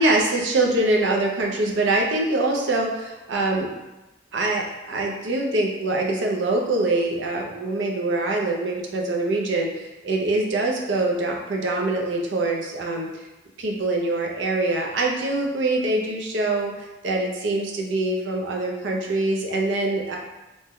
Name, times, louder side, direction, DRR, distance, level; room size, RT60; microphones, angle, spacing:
voice 1, 0.0-3.7 4.3-13.1 13.6-20.2, right 2 dB, 80° right, 0 dB, 0.5 m, -24 dB
2.6 x 2.1 x 3.5 m, 1.0 s
head